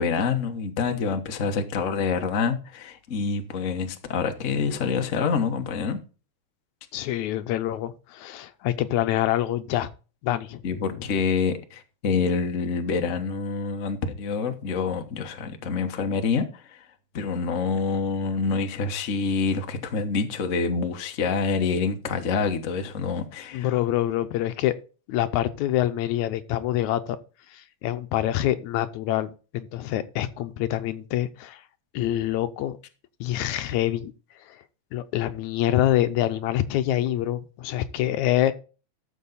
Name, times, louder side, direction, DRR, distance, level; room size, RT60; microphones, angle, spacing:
voice 1, 0.0-6.0 10.6-16.8 17.1-23.8, left 5 dB, 55° left, 0.8 m, -27 dB
voice 2, 6.9-9.9 10.2-11.0 23.5-24.7 25.1-27.2 27.5-31.6 31.9-32.8 33.2-34.1 34.9-38.5, left 13 dB, 85° left, 2.1 m, -26 dB
13.0 x 6.9 x 4.1 m
omnidirectional pair, 3.3 m